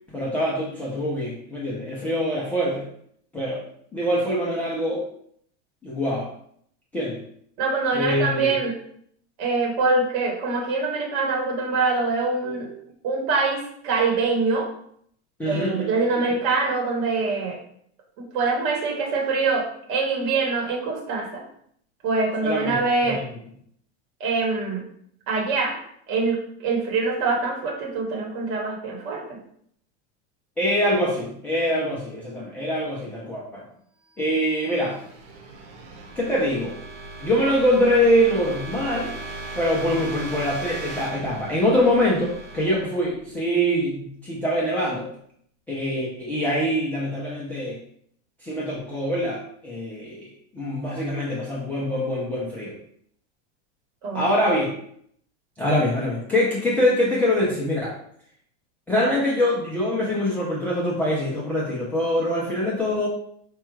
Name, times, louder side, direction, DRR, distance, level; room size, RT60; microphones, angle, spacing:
voice 1, 0.1-2.9 3.3-3.6 3.9-5.0 5.8-6.3 6.9-7.2 7.9-8.6 12.4-12.7 15.4-15.9 22.4-23.2 30.6-33.6 34.2-35.0 36.2-36.8 37.2-39.2 39.5-45.1 45.7-47.8 48.4-52.8 54.1-54.7 55.6-58.0 58.9-63.1, equal, 5° left, -7 dB, 0.3 m, -24 dB
voice 2, 7.6-8.7 9.4-12.7 13.0-14.7 15.5-17.6 18.2-21.4 22.0-23.2 24.2-24.8 25.3-25.8 26.1-29.4 54.0-54.3, right 3 dB, 40° right, 1 dB, 1.1 m, -24 dB
sound 1, 34.2-44.0, right 2 dB, 80° right, 1.1 m, -38 dB
4.4 x 2.3 x 4.5 m, 0.66 s
supercardioid pair, 155°, 34 cm